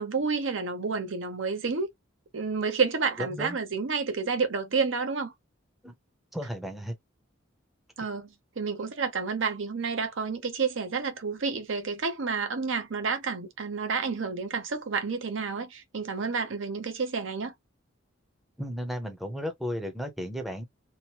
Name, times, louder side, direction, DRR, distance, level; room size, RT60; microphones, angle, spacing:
voice 1, 0.0-1.9 2.3-5.3 8.0-8.3 8.6-17.5, right 5 dB, 75° right, 0.7 m, -30 dB
voice 2, 3.2-3.6 5.8-5.9 6.3-6.9 18.6-20.6, equal, ahead, 0.6 m, -34 dB
2.9 x 2.0 x 2.9 m
head